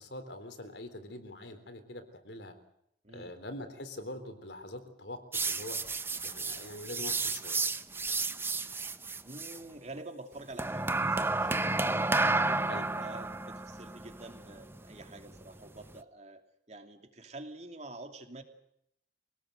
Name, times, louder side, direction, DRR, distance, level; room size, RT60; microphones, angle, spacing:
voice 1, 0.0-2.5 3.1-5.8 6.2-7.6 12.7-12.8, left 1 dB, 75° left, 9 dB, 3.7 m, -44 dB
sound 1, 5.3-9.6 10.6-16.0, right 3 dB, 15° right, 0.8 m, -32 dB
voice 2, 9.2-18.4, right 2 dB, 40° right, 5 dB, 2.9 m, -48 dB
25.5 x 18.5 x 7.9 m, 0.75 s
head